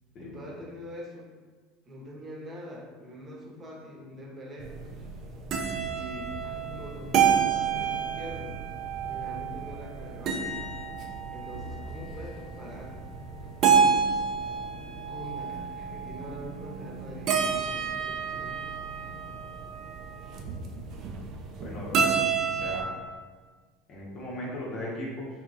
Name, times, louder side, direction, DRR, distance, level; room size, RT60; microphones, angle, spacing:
voice 1, 0.2-1.3 1.8-5.1 5.9-8.6 9.1-10.6 11.3-12.9 15.1-18.6, equal, 30° right, -2 dB, 0.9 m, -44 dB
sound 1, 4.6-22.8, right 6 dB, 50° right, 0.4 m, -29 dB
voice 2, 21.6-22.1 22.6-22.9 23.9-25.3, left 1 dB, 50° left, -5 dB, 0.8 m, -37 dB
3.3 x 2.9 x 2.5 m, 1.4 s
hypercardioid pair, 75°, 0 cm